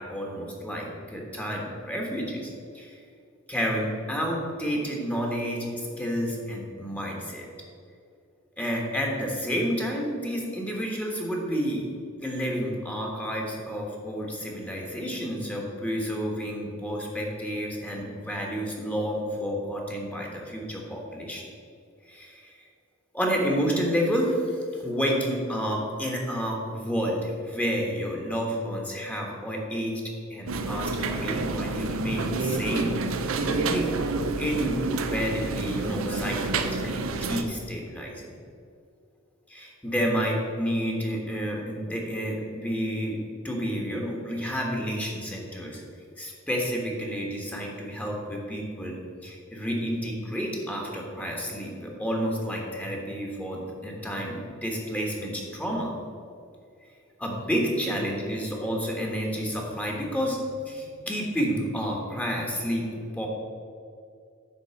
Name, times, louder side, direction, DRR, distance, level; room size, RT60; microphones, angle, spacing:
voice 1, 0.0-2.5 2.7-3.0 3.5-7.5 8.6-11.9 12.2-21.4 22.1-22.5 23.1-30.0 30.3-33.2 33.4-33.9 34.4-38.4 39.5-45.8 46.2-55.9 57.2-63.3, equal, 5° left, -1 dB, 1.3 m, -30 dB
sound 1, 30.5-37.4, right 3 dB, 85° right, 0.7 m, -29 dB
10.0 x 4.1 x 6.9 m, 2.4 s
head